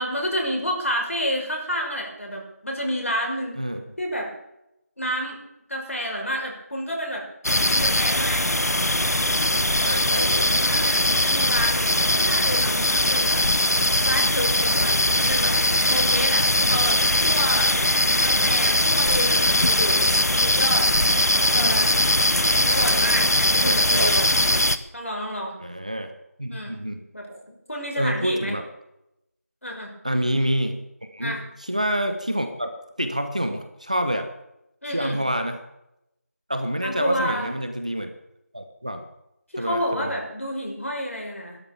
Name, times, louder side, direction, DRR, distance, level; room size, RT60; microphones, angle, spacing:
voice 1, 0.0-3.6 4.0-4.3 5.0-5.4 5.7-7.2 7.7-8.5 10.6-13.4 13.8-15.6 15.9-17.7 18.2-20.9 21.5-22.0 22.7-24.4 24.9-25.6 26.5-26.8 27.1-28.5 29.6-29.9 31.2-31.4 34.8-35.2 36.8-37.5 39.5-41.6, equal, 60° left, 0 dB, 5.8 m, -29 dB
sound 1, 7.4-24.8, left 1 dB, 85° left, 1.3 m, -20 dB
voice 2, 9.8-11.1 21.3-21.8 22.5-23.0 23.6-24.1 25.6-26.1 26.4-27.0 27.9-28.6 30.0-30.8 31.1-32.7 33.0-34.3 34.9-35.6 36.5-38.1 38.5-39.0 39.6-40.1, equal, 25° right, 6 dB, 1.0 m, -28 dB
15.5 x 12.5 x 7.2 m, 0.87 s
figure-of-eight pair, 180°, 8 cm